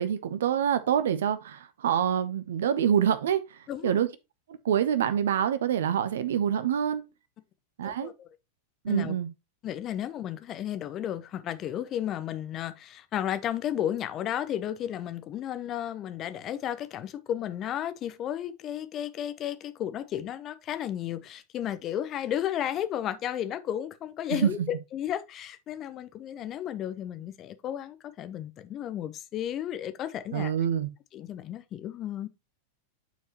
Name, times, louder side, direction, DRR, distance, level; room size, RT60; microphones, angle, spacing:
voice 1, 0.0-3.4 3.8-4.1 4.6-7.0 7.8-8.1 8.8-9.3 24.4-24.5 30.3-30.9, right 9 dB, 60° right, 0.7 m, -26 dB
voice 2, 3.7-4.0 7.8-8.3 8.9-9.1 9.6-30.5 31.1-32.3, left 11 dB, 30° left, 0.8 m, -33 dB
9.1 x 4.6 x 2.9 m
figure-of-eight pair, 90°, 0 cm